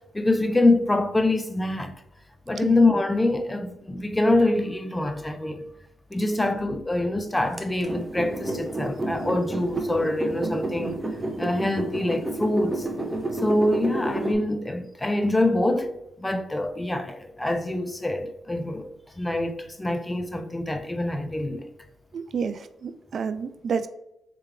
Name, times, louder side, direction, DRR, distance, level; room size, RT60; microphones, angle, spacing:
voice 1, 0.1-1.9 2.5-5.6 6.1-11.0 11.4-12.9 13.4-18.9 19.2-21.7, left 2 dB, 15° left, 0.4 m, -25 dB
sound 1, 7.6-14.3, right 1 dB, 25° right, 0.7 m, -30 dB
voice 2, 22.1-23.9, right 6 dB, 55° right, 0.3 m, -30 dB
3.3 x 3.2 x 3.2 m
supercardioid pair, 60°, 0 cm